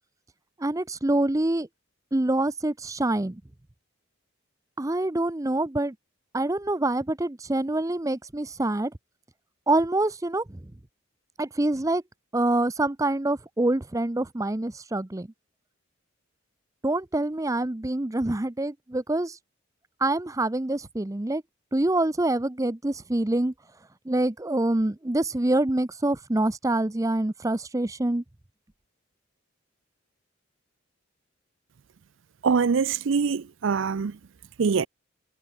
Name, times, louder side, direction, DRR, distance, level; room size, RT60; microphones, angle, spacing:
voice 1, 0.6-1.7 2.1-3.4 4.8-5.9 6.3-8.9 9.7-10.6 11.4-12.0 12.3-15.3 16.8-19.4 20.0-21.4 21.7-23.5 24.1-28.2, right 2 dB, 15° right, 0.6 m, -26 dB
voice 2, 32.4-34.1 34.6-34.9, right 5 dB, 65° right, 0.5 m, -23 dB
head